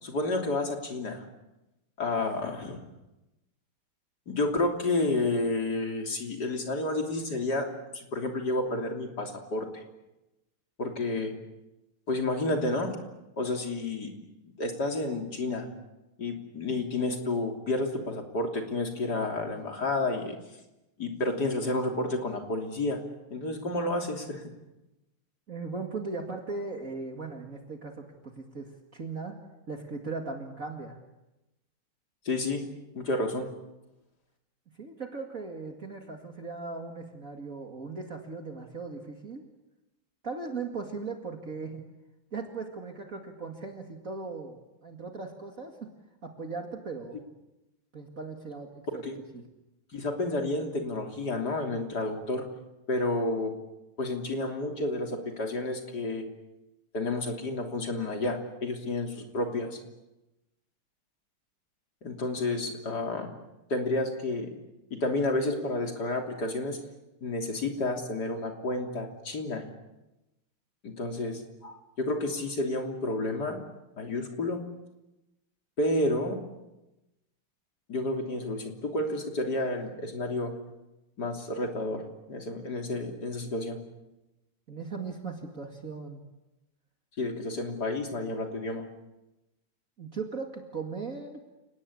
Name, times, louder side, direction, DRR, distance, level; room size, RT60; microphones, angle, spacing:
voice 1, 0.0-1.3 2.0-2.8 4.3-7.7 7.9-9.8 10.8-11.3 12.1-13.0 13.4-14.1 14.6-15.7 16.2-20.4 21.0-23.0 23.3-24.4 32.2-32.6 32.9-33.5 49.0-49.2 49.9-52.5 52.9-53.5 54.0-56.2 56.9-59.8 62.0-63.3 63.7-64.5 64.9-66.8 67.2-69.6 70.8-73.6 74.0-74.6 75.8-76.4 77.9-80.5 81.2-83.8 87.2-88.9, left 2 dB, 50° left, 3 dB, 3.7 m, -30 dB
voice 2, 25.5-29.4 29.7-31.0 34.8-39.4 40.2-41.8 42.3-45.9 46.2-47.2 47.9-49.0 49.3-49.4 84.7-86.2 90.0-91.4, right 4 dB, 40° right, 3 dB, 2.5 m, -38 dB
30.0 x 19.0 x 8.6 m, 0.98 s
omnidirectional pair, 2.3 m